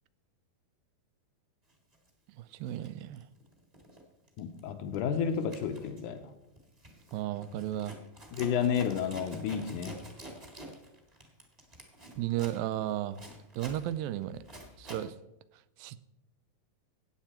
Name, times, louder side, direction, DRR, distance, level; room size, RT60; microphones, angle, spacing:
Zipper (clothing), 1.9-2.1 2.6-4.0 4.3-4.6 4.9-15.1, right 1 dB, 20° right, 1.0 m, -48 dB
voice 1, 2.3-3.3 7.1-8.0 12.2-13.3 13.6-14.4 14.8-15.2 15.8-16.0, right 13 dB, 90° right, 15 dB, 2.3 m, -34 dB
voice 2, 4.4-6.3 8.3-10.0, left 7 dB, 75° left, 7 dB, 2.1 m, -31 dB
14.5 x 9.1 x 4.4 m, 0.91 s
omnidirectional pair, 4.0 m